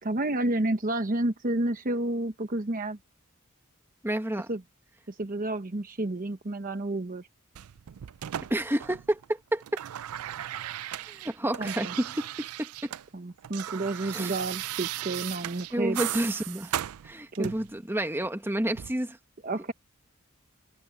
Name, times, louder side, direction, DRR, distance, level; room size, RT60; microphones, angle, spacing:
voice 1, 0.0-3.0 4.5-4.6 5.1-7.3 11.6-11.9 13.1-16.0 17.4-17.5 19.4-19.7, right 2 dB, 40° right, 1.0 m, -30 dB
voice 2, 4.0-4.5 8.5-9.8 10.9-12.9 14.0-14.3 15.7-19.2, right 1 dB, 10° right, 1.6 m, -30 dB
sound 1, 7.5-9.2 9.5-13.1 13.3-17.8 18.7-18.9, right 12 dB, 85° right, 0.4 m, -37 dB
head